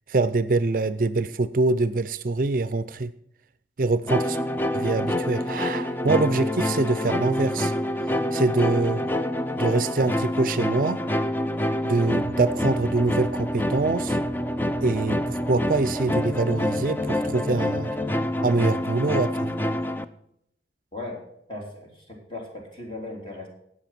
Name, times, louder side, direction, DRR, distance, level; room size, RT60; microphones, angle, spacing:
voice 1, 0.1-3.1 3.8-4.4 4.7-7.7 8.3-9.0 9.6-11.0 11.8-14.2 14.8-17.9 18.4-19.5, right 3 dB, 50° right, 14 dB, 0.5 m, -24 dB
sound 1, 4.1-20.0, left 1 dB, 10° left, 0.5 m, -27 dB
voice 2, 21.5-23.5, left 2 dB, 30° left, 0 dB, 3.2 m, -38 dB
12.0 x 8.5 x 5.9 m, 0.72 s
head